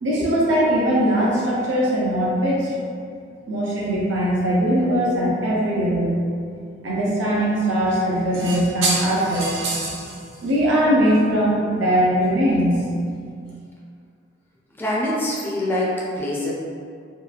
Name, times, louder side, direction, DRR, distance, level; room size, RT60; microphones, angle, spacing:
voice 1, 0.0-2.7 3.5-6.2 6.8-10.1 10.4-12.8, right 1 dB, 80° right, -6 dB, 0.5 m, -20 dB
voice 2, 14.8-16.5, left 1 dB, 10° left, -5 dB, 0.3 m, -24 dB
2.8 x 2.2 x 2.4 m, 2.3 s
head